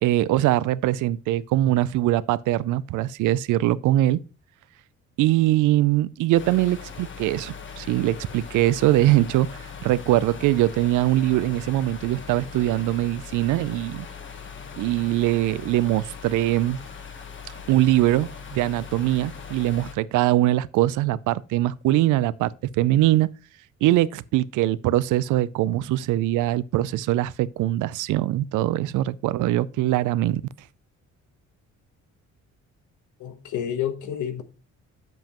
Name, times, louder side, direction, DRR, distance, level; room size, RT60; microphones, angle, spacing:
voice 1, 0.0-4.2 5.2-9.5 9.8-14.1 14.8-16.8 17.7-23.3 23.8-30.4, right 15 dB, 85° right, 0.5 m, -22 dB
sound 1, 6.3-19.9, left 6 dB, 40° left, 1.2 m, -40 dB
voice 2, 33.2-34.4, left 9 dB, 80° left, 1.1 m, -29 dB
7.6 x 7.2 x 2.9 m
cardioid pair, 90°, 30 cm